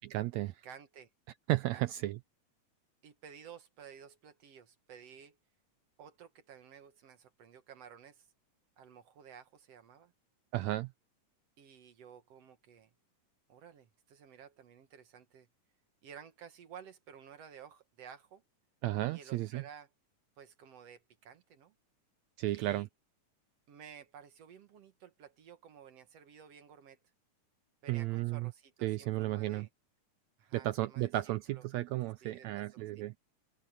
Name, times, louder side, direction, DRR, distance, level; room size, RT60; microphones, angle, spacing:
voice 1, 0.1-0.6 1.5-2.2 10.5-10.9 18.8-19.6 22.4-22.9 27.9-28.5 28.8-29.7 30.5-33.1, right 16 dB, 80° right, 1.6 m, -33 dB
voice 2, 0.6-1.1 1.7-1.8 3.0-5.4 6.0-8.3 8.8-10.1 11.6-12.9 13.5-15.5 16.0-18.4 19.1-19.9 20.4-21.7 22.5-22.9 23.7-27.0 27.8-29.7 30.4-31.1 31.5-31.7 32.2-33.0, right 8 dB, 60° right, 2.1 m, -54 dB
open air
omnidirectional pair, 3.7 m